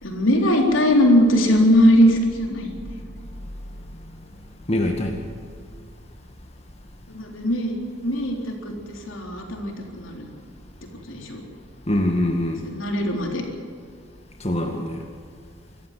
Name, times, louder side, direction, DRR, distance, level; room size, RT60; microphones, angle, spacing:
voice 1, 0.0-2.8 7.1-7.8 8.0-8.4 8.6-10.3 11.1-11.4 12.6-13.4, equal, 80° left, 2 dB, 4.0 m, -20 dB
voice 2, 4.7-5.3 11.9-12.7 14.4-15.0, left 1 dB, 30° left, 3 dB, 1.9 m, -23 dB
25.0 x 14.0 x 7.7 m, 2.2 s
head